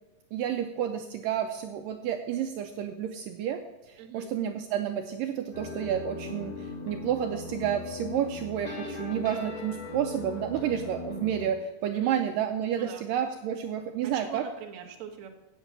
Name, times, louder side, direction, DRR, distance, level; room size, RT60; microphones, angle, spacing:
voice 1, 0.3-14.5, right 9 dB, 85° right, 6 dB, 1.9 m, -30 dB
voice 2, 4.0-4.3 11.9-12.2 12.7-13.0 14.0-15.3, right 8 dB, 60° right, 1 dB, 2.0 m, -43 dB
sound 1, 5.5-11.4, left 3 dB, 45° left, 1.9 m, -39 dB
8.5 x 8.0 x 7.4 m, 1.1 s
omnidirectional pair, 4.5 m